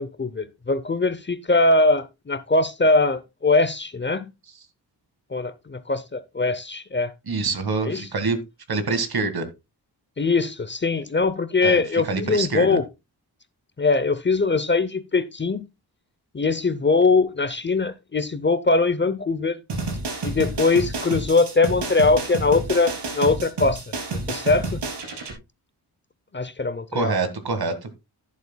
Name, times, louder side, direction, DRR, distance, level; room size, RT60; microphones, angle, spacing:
voice 1, 0.0-4.3 5.3-7.1 7.9-8.1 10.2-12.8 13.8-15.6 16.3-19.6 20.2-23.9 24.3-24.8 26.3-27.1, left 3 dB, 30° left, 0.7 m, -21 dB
voice 2, 7.3-8.4 8.7-9.4 11.6-12.8 26.9-27.7, right 3 dB, 65° right, 1.9 m, -25 dB
sound 1, 19.7-25.3, right 2 dB, 85° right, 3.4 m, -30 dB
11.0 x 11.0 x 2.2 m
wide cardioid pair, 125°, 40 cm